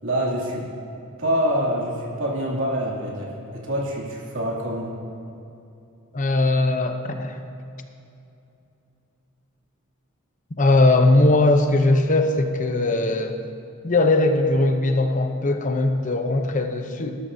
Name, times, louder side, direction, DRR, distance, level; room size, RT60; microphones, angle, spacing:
voice 1, 0.0-0.7 1.2-4.9, equal, 70° right, -3 dB, 2.7 m, -26 dB
voice 2, 6.1-7.4 10.6-13.4 13.8-17.2, left 2 dB, 35° left, 6 dB, 0.7 m, -20 dB
19.5 x 12.5 x 2.8 m, 2.7 s
head